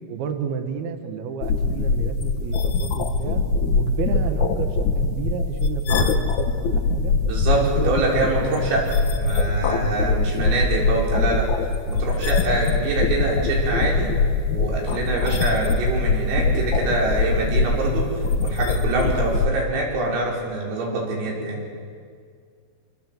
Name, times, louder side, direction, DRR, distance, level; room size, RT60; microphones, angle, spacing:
voice 1, 0.1-3.4 3.7-7.1 7.5-8.6 10.0-10.3 15.0-15.2, right 7 dB, 65° right, 6 dB, 2.8 m, -32 dB
sound 1, 1.4-19.5, left 3 dB, 80° left, 1.6 m, -22 dB
voice 2, 7.2-11.5 11.9-14.1 14.5-18.1 18.4-21.6, right 2 dB, 85° right, -3 dB, 8.3 m, -25 dB
26.5 x 26.0 x 8.0 m, 2.1 s
omnidirectional pair, 5.9 m